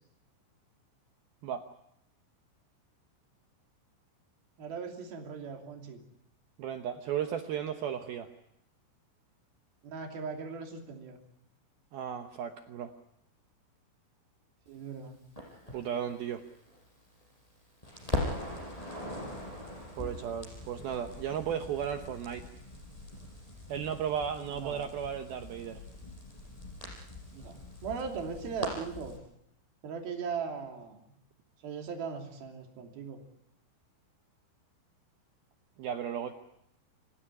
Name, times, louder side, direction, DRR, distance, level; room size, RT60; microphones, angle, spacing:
voice 1, 4.6-6.0 9.8-11.2 14.7-15.2 24.5-25.0 27.3-29.2 29.8-31.0 31.6-33.2, right 5 dB, 55° right, 3 dB, 4.5 m, -39 dB
voice 2, 6.6-8.3 11.9-12.9 15.7-16.4 20.0-22.4 23.7-25.8 35.8-36.3, right 8 dB, 75° right, 6 dB, 2.3 m, -35 dB
Crackle, 15.4-17.5 17.8-29.2, left 1 dB, 5° left, 5.5 m, -41 dB
27.0 x 16.0 x 9.9 m, 0.77 s
omnidirectional pair, 5.7 m